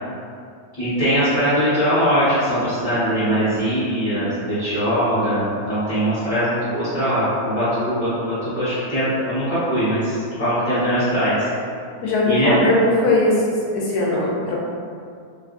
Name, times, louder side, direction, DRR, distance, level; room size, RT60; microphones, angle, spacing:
voice 1, 0.8-11.5 12.3-12.5, equal, 35° left, -17 dB, 1.1 m, -21 dB
voice 2, 12.0-13.4 13.7-14.6, left 2 dB, 85° left, -4 dB, 1.1 m, -19 dB
3.1 x 2.4 x 2.4 m, 2.3 s
omnidirectional pair, 1.6 m